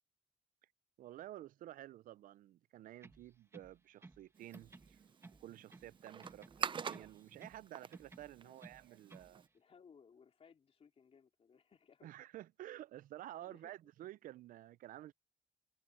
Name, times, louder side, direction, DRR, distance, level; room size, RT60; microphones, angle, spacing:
voice 1, 1.0-5.0 5.4-9.4 12.0-15.1, right 13 dB, 90° right, 0.4 m, -52 dB
sound 1, 2.9-4.3 4.5-6.0 6.2-7.6 7.9-9.3, right 3 dB, 20° right, 1.4 m, -58 dB
sound 2, 4.3-9.5, right 6 dB, 35° right, 0.6 m, -46 dB
voice 2, 9.5-12.1 13.4-13.7, left 6 dB, 45° left, 2.8 m, -63 dB
cardioid pair, 125°, 14 cm